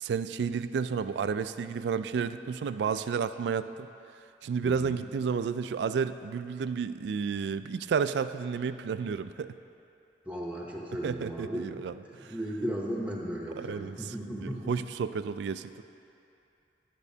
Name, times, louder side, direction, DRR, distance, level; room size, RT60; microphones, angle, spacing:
voice 1, 0.0-3.9 4.4-9.5 11.0-12.3 13.6-14.0 14.4-15.8, right 6 dB, 75° right, 12 dB, 0.3 m, -31 dB
voice 2, 4.6-5.0 10.2-14.7, equal, 10° right, -2 dB, 0.8 m, -36 dB
10.5 x 10.5 x 2.7 m, 2.6 s
head